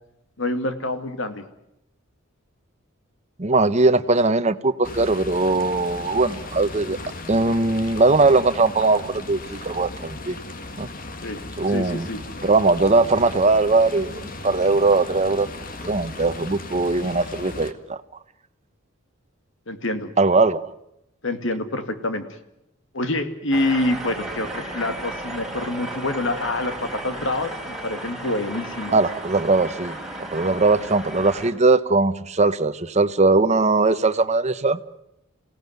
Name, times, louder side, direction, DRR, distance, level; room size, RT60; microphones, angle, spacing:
voice 1, 0.4-1.5 11.2-12.2 19.7-20.1 21.2-22.2 22.9-29.0, left 2 dB, 65° left, 2.4 m, -26 dB
voice 2, 3.4-7.0 7.3-10.4 10.8-10.9 11.6-12.1 12.4-15.5 15.8-18.0 20.2-20.7 28.9-30.0 30.3-34.8, right 3 dB, 35° right, 1.0 m, -20 dB
sound 1, 4.8-17.7, left 2 dB, 45° left, 1.8 m, -36 dB
sound 2, 23.5-31.5, right 1 dB, ahead, 3.4 m, -34 dB
27.5 x 17.5 x 9.5 m
head